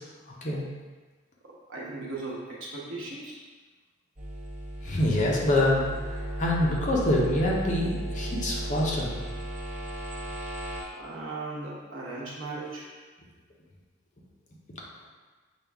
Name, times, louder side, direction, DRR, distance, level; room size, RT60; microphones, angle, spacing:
voice 1, 1.4-3.4 10.9-12.9, right 2 dB, 80° right, -5 dB, 1.0 m, -37 dB
sound 1, 4.2-10.8, right 1 dB, 40° right, 0.8 m, -35 dB
voice 2, 4.8-5.8 6.4-9.1, left 1 dB, 40° left, -3 dB, 0.6 m, -25 dB
5.2 x 2.2 x 3.4 m, 1.4 s
head